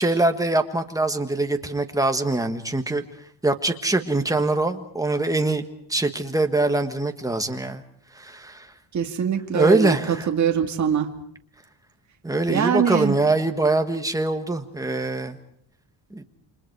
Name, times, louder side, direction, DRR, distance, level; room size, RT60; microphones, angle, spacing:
voice 1, 0.0-3.0 3.4-5.6 5.9-7.8 8.1-8.7 9.5-10.3 12.2-15.4 16.1-16.2, right 2 dB, 5° right, 6 dB, 1.5 m, -23 dB
voice 2, 8.9-11.1 12.5-13.2, right 8 dB, 35° right, 3 dB, 2.3 m, -23 dB
29.5 x 26.5 x 4.8 m, 0.64 s
cardioid pair, 170°, 49 cm